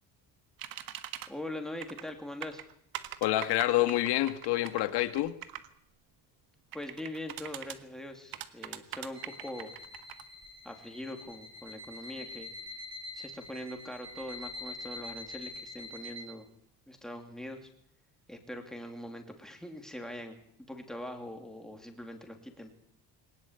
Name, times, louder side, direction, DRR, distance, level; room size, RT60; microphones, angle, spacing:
sound 1, 0.6-1.3 1.8-2.1 2.4-5.7 6.7-7.8 8.3-10.2, right 12 dB, 60° right, 1.6 m, -42 dB
voice 1, 1.3-2.6 6.7-9.7 10.6-12.5 13.1-16.5 16.9-17.7 18.3-20.4 20.7-22.7, left 1 dB, ahead, 2.9 m, -42 dB
voice 2, 3.2-5.4, left 15 dB, 75° left, 1.8 m, -27 dB
sound 2, 9.1-16.2, left 2 dB, 40° right, 4.8 m, -45 dB
22.0 x 19.5 x 8.1 m
cardioid pair, 170°, 40 cm